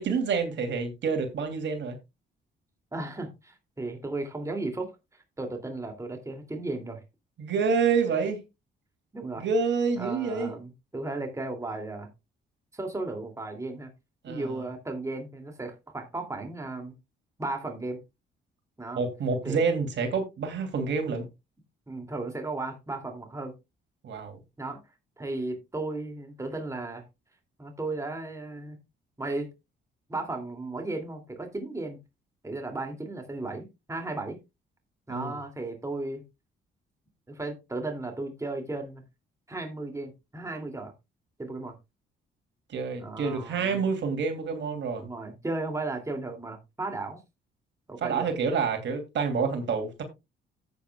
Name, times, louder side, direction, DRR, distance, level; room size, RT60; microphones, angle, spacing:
voice 1, 0.0-2.0 7.4-8.4 9.4-10.5 14.2-14.6 19.0-21.3 24.0-24.4 35.1-35.4 42.7-45.1 48.0-50.0, right 5 dB, 65° right, 2.9 m, -28 dB
voice 2, 2.9-7.0 9.1-9.5 10.0-12.1 12.7-13.9 14.3-17.0 17.4-18.0 18.8-19.0 19.4-19.6 21.9-23.5 24.6-24.8 25.2-27.0 27.6-28.8 29.2-29.5 30.1-32.0 32.4-34.4 35.1-36.2 37.3-39.0 39.5-40.9 41.4-41.8 43.0-43.8 45.0-47.2 47.9-48.3, right 2 dB, 15° right, 2.6 m, -35 dB
14.0 x 8.6 x 2.3 m
cardioid pair, 90°, 20 cm